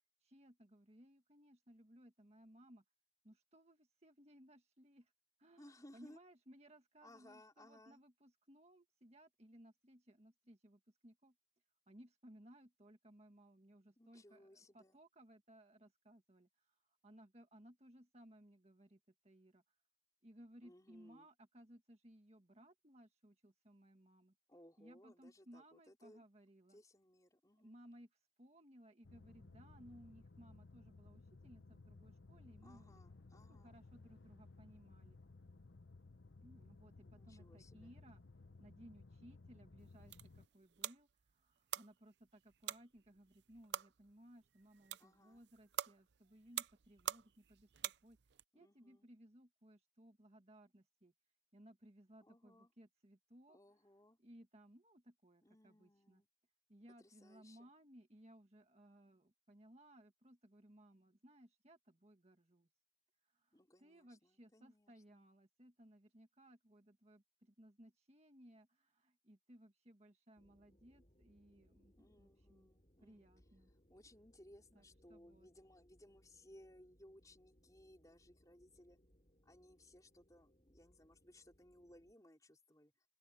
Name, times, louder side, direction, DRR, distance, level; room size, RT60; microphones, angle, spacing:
voice 1, 0.2-2.8 3.2-5.1 5.4-11.3 11.9-19.6 20.2-24.3 24.8-26.8 27.6-33.0 33.5-35.2 36.4-38.2 38.6-48.2 48.5-51.1 51.5-53.6 54.2-56.2 56.7-62.7 63.2-72.7 73.0-73.7 74.7-75.5, equal, 35° right, 1.7 m, -63 dB
voice 2, 5.6-6.2 7.0-8.0 14.0-15.0 20.6-21.3 24.5-26.2 26.7-27.8 32.6-33.8 37.0-37.9 45.0-45.4 48.5-49.1 52.2-52.7 53.5-54.2 55.4-56.3 57.0-57.7 63.5-65.2 72.0-73.3 73.9-79.0 79.4-82.9, left 1 dB, 20° left, 4.3 m, -63 dB
sound 1, 29.0-40.5, left 3 dB, 70° left, 0.9 m, -59 dB
sound 2, 39.8-48.4, right 10 dB, 60° right, 0.6 m, -48 dB
sound 3, 70.4-82.1, equal, 35° left, 5.1 m, -72 dB
open air
head